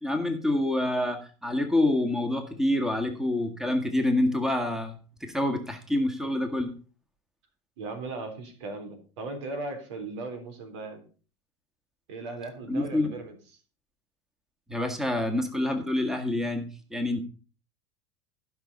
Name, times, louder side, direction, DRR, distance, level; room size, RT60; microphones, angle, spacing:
voice 1, 0.0-6.7 12.7-13.1 14.7-17.2, left 1 dB, 5° right, 6 dB, 1.8 m, -27 dB
voice 2, 7.8-11.0 12.1-13.3, right 3 dB, 80° right, 6 dB, 3.6 m, -37 dB
15.0 x 5.7 x 5.3 m, 0.38 s
supercardioid pair, 120°, 15 cm